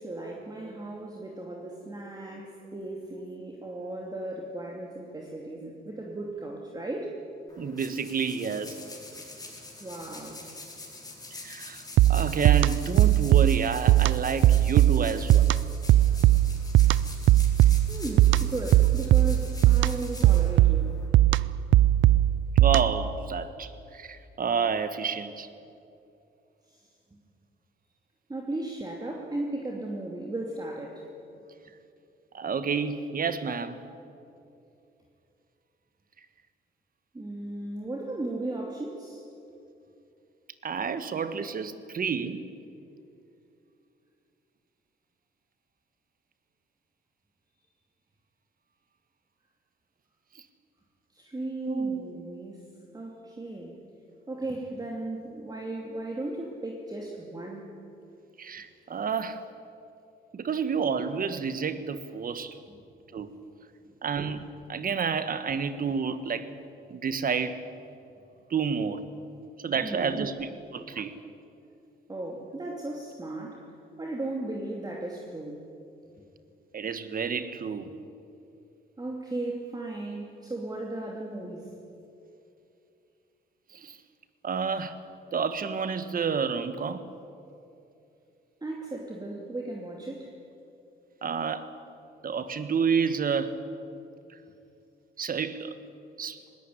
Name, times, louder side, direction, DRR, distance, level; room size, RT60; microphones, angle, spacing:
voice 1, 0.0-7.2 9.8-10.4 17.9-21.0 26.7-26.9 28.3-31.1 37.1-39.2 51.1-52.7 52.9-53.8 54.3-57.7 63.8-63.9 69.8-70.3 72.1-73.7 74.0-75.7 79.0-81.7 88.6-90.3, right 2 dB, 20° right, 0 dB, 2.8 m, -36 dB
sound 1, 7.5-21.1, left 2 dB, 20° left, 5.0 m, -45 dB
voice 2, 7.6-8.8 11.4-15.5 22.5-25.5 32.3-33.8 40.6-42.4 51.7-52.0 58.4-59.4 60.3-62.6 63.1-63.3 64.0-66.5 66.9-67.6 68.5-69.0 69.6-71.2 76.7-77.9 83.7-84.0 84.4-85.0 85.3-87.1 91.2-91.7 92.2-93.6 95.2-95.7 96.2-96.4, right 6 dB, 45° right, 11 dB, 1.6 m, -30 dB
sound 2, 12.0-23.1, right 14 dB, 75° right, 0.5 m, -21 dB
20.0 x 18.0 x 9.6 m, 2.7 s
cardioid pair, 90°, 20 cm